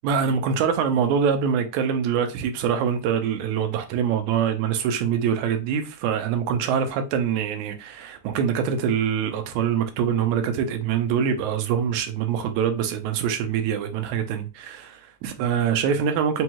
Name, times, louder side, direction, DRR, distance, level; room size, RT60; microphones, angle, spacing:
voice 1, 0.0-16.4, right 7 dB, 80° right, 1.9 m, -24 dB
5.3 x 2.3 x 2.9 m
omnidirectional pair, 3.5 m